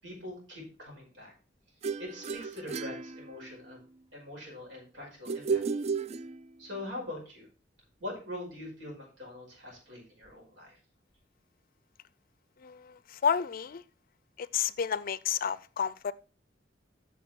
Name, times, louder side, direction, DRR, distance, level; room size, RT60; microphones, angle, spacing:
voice 1, 0.0-1.3 2.0-3.8 4.1-5.6 6.6-7.5 8.0-10.8, left 1 dB, 85° right, 5.3 m, -43 dB
sound 1, 1.8-3.8 5.3-6.8, right 5 dB, 35° right, 0.3 m, -34 dB
voice 2, 12.6-13.8 14.4-16.1, left 7 dB, 50° left, 0.4 m, -31 dB
8.9 x 6.6 x 4.4 m
head